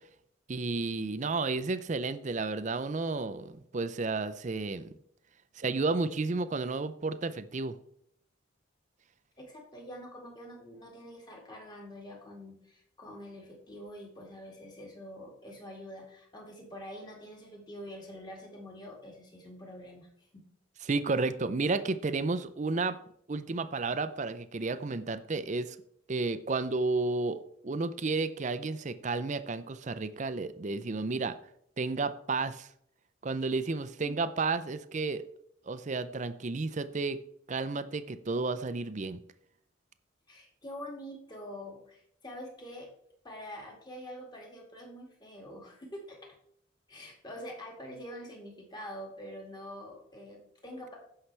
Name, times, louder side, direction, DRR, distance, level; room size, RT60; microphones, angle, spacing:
voice 1, 0.5-4.9 5.6-7.7 20.9-23.0 23.3-25.8 26.1-31.3 31.8-32.7 33.2-35.2 35.7-37.2 37.5-39.2, right 3 dB, 35° right, 12 dB, 0.5 m, -32 dB
voice 2, 9.4-20.4 34.0-34.1 40.3-42.9 43.2-46.2 46.9-51.0, equal, 20° left, -1 dB, 2.0 m, -45 dB
15.5 x 5.7 x 3.3 m, 0.71 s
head